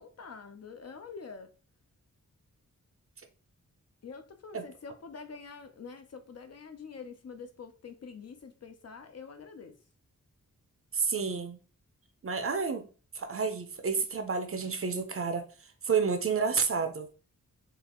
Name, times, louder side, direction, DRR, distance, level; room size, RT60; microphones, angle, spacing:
voice 1, 0.0-1.5 4.0-9.8, left 5 dB, 50° left, 0.5 m, -46 dB
voice 2, 10.9-11.6 12.2-12.9 13.1-15.5 15.8-17.1, right 5 dB, 45° right, 0.5 m, -30 dB
3.7 x 2.4 x 2.9 m
wide cardioid pair, 105°, 33 cm